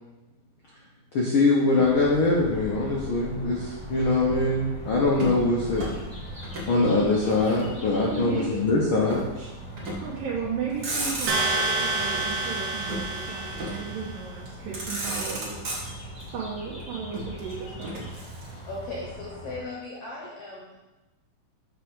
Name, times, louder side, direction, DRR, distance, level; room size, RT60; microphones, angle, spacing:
voice 1, 1.1-5.9 6.4-9.5, left 2 dB, 85° left, -4 dB, 1.1 m, -23 dB
sound 1, 1.7-19.6, right 1 dB, 5° left, 0.6 m, -40 dB
Motor vehicle (road), 5.1-6.8 7.0-8.1 9.1-9.3 9.8-10.2 10.6-11.7 12.9-13.9 14.5-14.6 14.7-16.2 17.1-18.8, right 1 dB, 50° right, 1.2 m, -35 dB
voice 2, 8.1-8.6 10.0-15.7 16.3-18.1, right 6 dB, 85° right, -5 dB, 2.7 m, -34 dB
sound 2, 11.3-14.2, right 2 dB, 70° right, 1.6 m, -28 dB
voice 3, 18.6-20.8, left 2 dB, 60° left, -3 dB, 1.7 m, -37 dB
7.5 x 3.5 x 6.4 m, 1.1 s
omnidirectional pair, 4.0 m